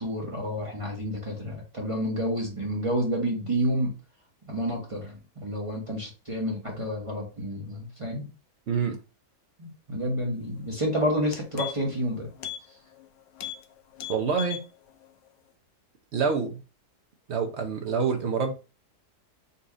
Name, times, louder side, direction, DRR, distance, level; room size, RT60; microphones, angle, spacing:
voice 1, 0.0-3.9 4.5-8.3 9.6-12.3, equal, 20° right, -2 dB, 1.1 m, -29 dB
voice 2, 8.7-9.0 14.1-14.6 16.1-16.6 17.3-18.5, right 5 dB, 55° right, 3 dB, 0.8 m, -26 dB
sound 1, 10.7-10.8 11.1-12.0 12.4-12.6 12.9-13.1 13.4-13.6 13.9-14.7 15.0-15.1, left 10 dB, 85° left, 1.2 m, -37 dB
4.1 x 2.5 x 4.7 m, 0.32 s
omnidirectional pair, 1.7 m